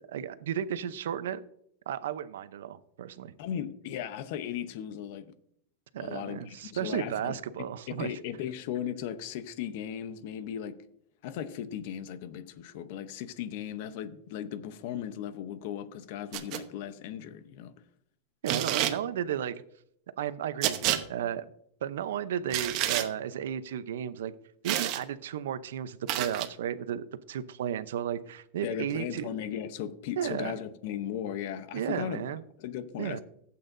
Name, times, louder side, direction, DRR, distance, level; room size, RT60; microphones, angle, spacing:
voice 1, 0.1-1.4 1.9-3.3 5.9-8.1 18.4-19.6 20.2-21.5 21.8-24.3 24.6-29.3 30.2-30.5 31.7-32.4 33.0-33.2, right 9 dB, 85° right, 0.7 m, -34 dB
voice 2, 3.4-5.4 6.0-7.4 7.9-10.8 11.2-17.7 28.6-33.2, left 9 dB, 50° left, 0.8 m, -37 dB
sound 1, 16.3-16.6 18.5-19.0 20.6-21.0 22.5-23.1 24.6-25.0 26.1-26.5, right 12 dB, 35° right, 0.9 m, -29 dB
16.0 x 8.6 x 2.6 m
supercardioid pair, 170°, 0 cm